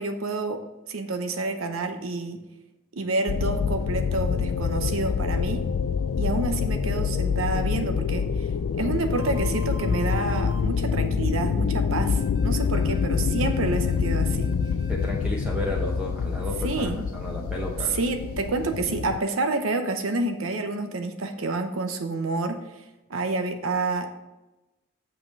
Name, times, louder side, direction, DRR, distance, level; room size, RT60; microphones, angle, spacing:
voice 1, 0.0-2.4 2.9-5.7 6.2-8.5 8.8-14.5 16.6-17.0 17.9-22.6 23.1-24.1, right 3 dB, 75° right, 7 dB, 0.7 m, -29 dB
sound 1, 3.3-19.2, left 6 dB, 75° left, 0.4 m, -26 dB
sound 2, 9.2-10.6 12.2-15.1 16.7-16.9, equal, 30° right, 0.9 m, -44 dB
voice 2, 14.9-18.0, left 1 dB, 5° right, -3 dB, 1.0 m, -32 dB
7.1 x 5.8 x 5.3 m, 1.0 s
head